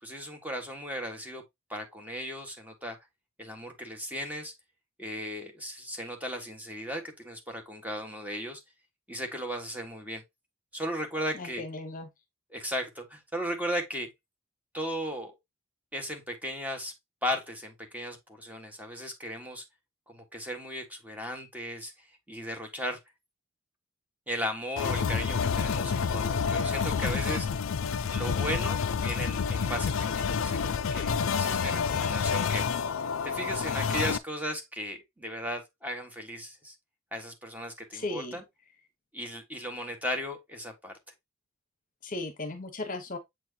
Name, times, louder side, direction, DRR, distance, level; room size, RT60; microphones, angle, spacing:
voice 1, 0.0-1.4 1.7-3.0 3.4-4.5 5.0-8.6 9.1-10.2 10.7-11.6 12.5-14.1 14.7-15.3 15.9-16.9 17.2-19.6 20.1-21.9 22.3-23.0 24.3-27.5 28.1-30.6 30.9-32.6 33.2-36.7 37.1-38.4 39.1-40.9, equal, 5° right, 1.5 m, -36 dB
voice 2, 11.3-12.1 37.9-38.4 42.0-43.2, left 2 dB, 40° left, 1.0 m, -36 dB
sound 1, 24.8-34.2, left 6 dB, 65° left, 0.5 m, -29 dB
7.7 x 4.5 x 2.8 m
head